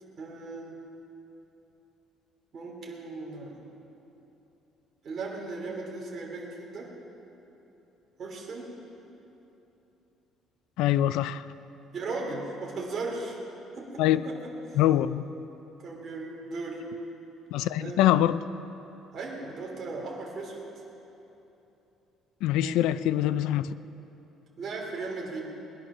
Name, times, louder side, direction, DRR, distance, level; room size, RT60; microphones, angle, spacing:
voice 1, 0.2-0.8 2.5-3.6 5.0-7.0 8.2-8.8 11.9-13.4 13.7-14.8 15.8-16.9 17.8-18.0 19.1-20.6 22.6-22.7 24.6-25.4, right 3 dB, 35° right, 2.8 m, -37 dB
voice 2, 10.8-11.5 14.0-14.2 14.8-15.2 17.5-18.4 22.4-23.7, left 12 dB, 85° left, 0.4 m, -24 dB
20.0 x 10.5 x 6.1 m
cardioid pair, 165°, 0 cm